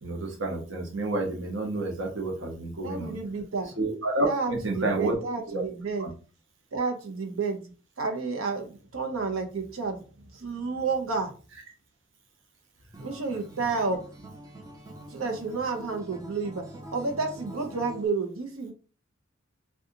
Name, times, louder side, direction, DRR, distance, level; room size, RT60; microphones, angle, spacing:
voice 1, 0.0-3.2 3.8-5.1 5.5-5.6 6.0-6.1, right 2 dB, 70° right, 1 dB, 1.0 m, -30 dB
voice 2, 2.8-3.7 4.2-6.1 6.7-10.0 10.3-11.3 13.0-14.0 15.1-16.6 16.9-18.7, right 4 dB, 90° right, 4 dB, 0.8 m, -30 dB
Acoustic guitar, 12.9-18.1, right 1 dB, 15° right, 0.5 m, -45 dB
2.7 x 2.4 x 3.8 m, 0.36 s
head